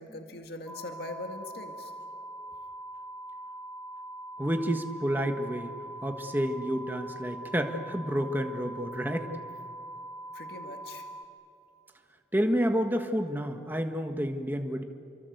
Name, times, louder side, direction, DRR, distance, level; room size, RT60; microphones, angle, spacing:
voice 1, 0.0-1.9 10.3-11.1, left 2 dB, 55° left, 4 dB, 2.0 m, -41 dB
sound 1, 0.7-11.3, right 1 dB, 5° left, 1.0 m, -43 dB
voice 2, 4.4-5.7 6.0-9.3 12.3-14.8, equal, 10° right, 5 dB, 1.6 m, -29 dB
28.5 x 24.5 x 8.1 m, 2.7 s
head